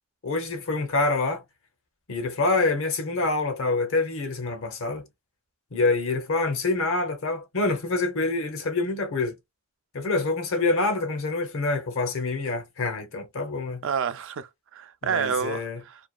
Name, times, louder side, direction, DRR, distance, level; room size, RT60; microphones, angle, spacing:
voice 1, 0.2-1.4 2.1-5.0 5.7-9.3 9.9-13.8 15.0-15.8, left 3 dB, 65° left, 0.7 m, -26 dB
voice 2, 13.8-16.0, right 6 dB, 60° right, 0.4 m, -29 dB
2.8 x 2.3 x 2.3 m
head